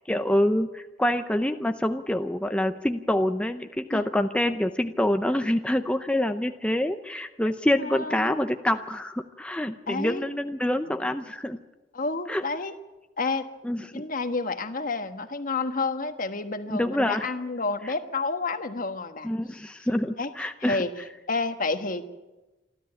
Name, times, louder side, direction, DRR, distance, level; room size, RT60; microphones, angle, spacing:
voice 1, 0.1-11.6 12.3-12.4 13.6-14.0 16.7-17.3 19.2-20.8, left 1 dB, 5° left, 7 dB, 0.6 m, -26 dB
voice 2, 7.8-8.5 9.9-10.2 10.9-11.0 11.9-12.7 13.2-13.5 13.9-19.3 20.2-20.3 20.6-20.9 21.3-22.0, left 3 dB, 50° left, 8 dB, 1.4 m, -30 dB
26.5 x 13.0 x 8.8 m, 1.1 s
head